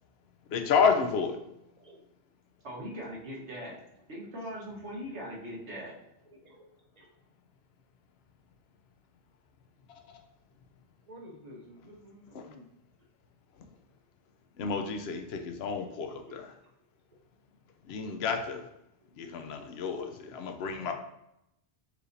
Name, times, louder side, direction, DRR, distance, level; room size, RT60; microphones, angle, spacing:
voice 1, 0.5-1.4 12.3-12.4 14.6-16.5 17.9-18.6 19.2-20.9, left 6 dB, 70° left, 6 dB, 0.8 m, -30 dB
voice 2, 2.6-3.8 4.1-5.9, equal, 80° right, -4 dB, 1.4 m, -40 dB
voice 3, 6.3-6.6 6.9-7.1 11.1-12.6 15.7-15.9 16.2-16.7 20.7-20.9, equal, 40° right, -1 dB, 0.8 m, -51 dB
4.7 x 3.2 x 2.6 m, 0.83 s
omnidirectional pair, 1.1 m